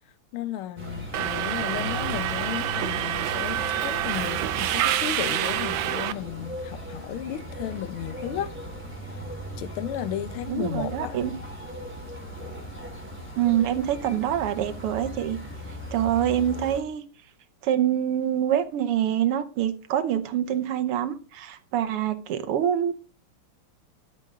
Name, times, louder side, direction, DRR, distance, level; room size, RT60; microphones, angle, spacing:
voice 1, 0.3-8.5 9.6-11.2, left 11 dB, 80° left, 1.7 m, -34 dB
sound 1, 0.8-16.8, equal, 5° right, 3.1 m, -38 dB
Subway metro underground, 1.1-6.1, right 12 dB, 70° right, 1.3 m, -27 dB
voice 2, 10.5-11.3 13.4-15.4 15.9-17.0 17.6-22.9, right 10 dB, 90° right, 1.9 m, -25 dB
11.5 x 8.6 x 3.7 m
omnidirectional pair, 2.4 m